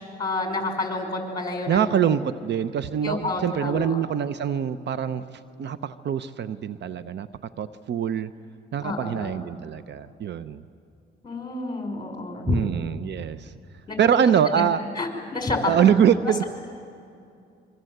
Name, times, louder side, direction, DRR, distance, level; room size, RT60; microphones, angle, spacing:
voice 1, 0.2-2.0 3.0-4.0 8.8-9.3 11.2-12.6 13.9-14.1 14.5-14.6 15.0-15.7, left 3 dB, 20° left, 3 dB, 5.4 m, -29 dB
voice 2, 1.7-7.3 7.6-8.3 8.7-10.6 12.5-13.5 14.0-14.8 15.7-16.4, right 8 dB, 60° right, 14 dB, 0.8 m, -24 dB
26.5 x 24.0 x 8.0 m, 2.5 s
cardioid pair, 90°, 20 cm